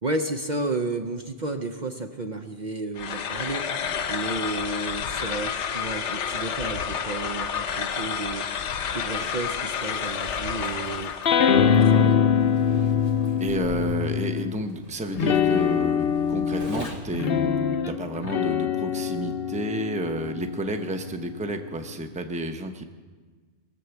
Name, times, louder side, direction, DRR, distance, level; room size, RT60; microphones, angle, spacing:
voice 1, 0.0-3.7 4.1-8.5 8.9-11.1 11.5-12.2, right 2 dB, 45° right, 5 dB, 0.8 m, -32 dB
sound 1, 3.0-11.4, left 7 dB, 80° left, 1.1 m, -30 dB
Zipper (clothing), 8.6-17.3, right 1 dB, 75° right, 2.7 m, -46 dB
sound 2, 11.2-14.6 15.1-21.9, left 7 dB, 60° left, 0.8 m, -24 dB
voice 2, 13.4-17.5 17.9-22.8, right 1 dB, 5° right, 6 dB, 0.7 m, -31 dB
21.0 x 7.8 x 7.1 m, 1.4 s
omnidirectional pair, 1.2 m